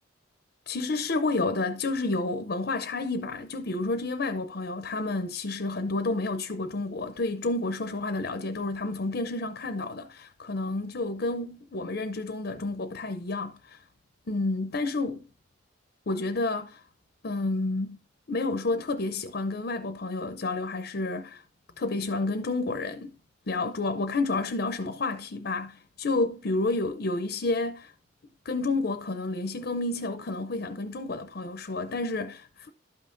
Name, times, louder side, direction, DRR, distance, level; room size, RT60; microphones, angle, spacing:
voice 1, 0.7-13.8 14.3-15.3 16.1-16.8 17.2-18.0 18.3-21.4 21.8-23.1 23.5-27.9 28.4-32.7, left 2 dB, 50° left, 0.6 m, -30 dB
12.5 x 5.6 x 2.5 m
head